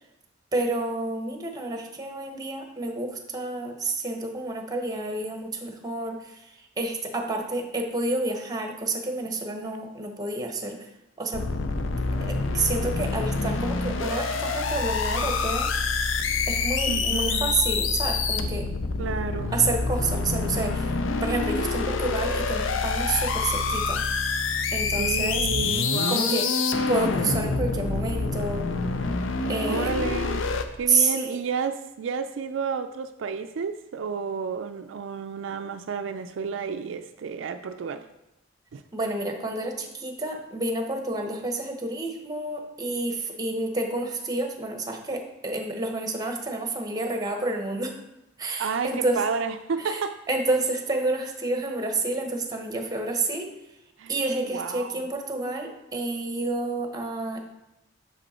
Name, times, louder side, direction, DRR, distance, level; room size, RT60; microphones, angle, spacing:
voice 1, 0.5-6.5 6.8-10.8 11.2-11.5 12.2-15.7 16.5-18.7 19.5-20.9 21.2-24.0 24.7-25.5 26.1-26.5 26.9-28.7 29.4-29.9 30.9-31.4 38.9-48.0 48.4-49.2 49.8-50.0 50.3-53.5 54.1-57.5, right 2 dB, 20° right, 4 dB, 0.9 m, -29 dB
sound 1, 11.3-30.6, left 4 dB, 80° left, 0.6 m, -26 dB
voice 2, 16.9-17.5 19.0-19.6 25.0-26.3 29.7-30.4 30.8-38.1 38.7-38.8 48.6-50.2 54.0-55.0, right 5 dB, 75° right, 8 dB, 0.4 m, -31 dB
6.6 x 5.3 x 4.2 m, 0.92 s
head